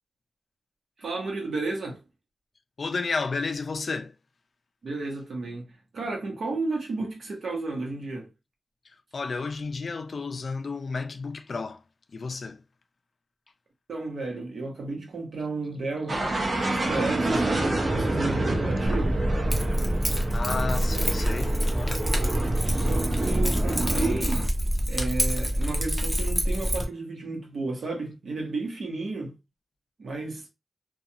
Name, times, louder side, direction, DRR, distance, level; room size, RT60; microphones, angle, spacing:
voice 1, 1.0-2.0 4.8-8.3 13.9-16.2 16.5-19.2 22.6-24.5 24.9-29.4 30.0-30.5, right 3 dB, 75° right, 1.0 m, -33 dB
voice 2, 2.8-4.2 8.8-11.8 12.1-12.6 20.3-22.0, left 4 dB, 50° left, 0.3 m, -32 dB
sound 1, 16.1-24.5, right 2 dB, 40° right, 0.7 m, -27 dB
Keys jangling, 18.8-26.8, equal, 5° right, 0.5 m, -26 dB
2.4 x 2.3 x 2.7 m
wide cardioid pair, 165°, 0 cm